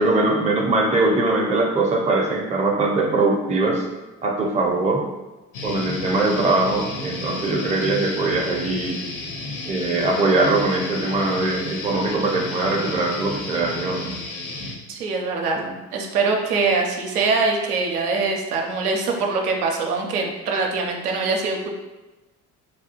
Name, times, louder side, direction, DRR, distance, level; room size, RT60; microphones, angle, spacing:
voice 1, 0.0-3.8 4.2-5.0 5.6-9.0 9.7-14.1 15.5-15.7, right 2 dB, 15° right, 0 dB, 0.5 m, -21 dB
sound 1, 5.5-14.7, left 2 dB, 55° left, 0.7 m, -32 dB
voice 2, 14.9-15.6 15.9-21.7, right 4 dB, 80° right, 1 dB, 0.6 m, -23 dB
3.3 x 2.2 x 2.8 m, 1.1 s
figure-of-eight pair, 55°, 45 cm